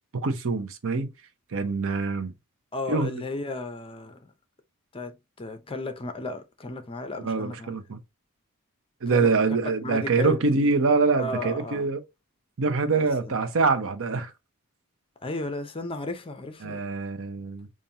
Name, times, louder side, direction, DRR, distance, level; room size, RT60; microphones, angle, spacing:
voice 1, 0.2-1.1 1.5-2.3 2.9-3.2 7.2-8.0 9.0-12.0 12.6-14.3 16.6-17.7, right 4 dB, 65° right, 0.7 m, -25 dB
voice 2, 2.7-4.3 4.9-7.7 9.1-9.3 9.8-10.7 11.2-11.9 12.9-13.3 15.2-16.8, left 2 dB, 25° left, 0.6 m, -34 dB
5.4 x 2.6 x 2.7 m
head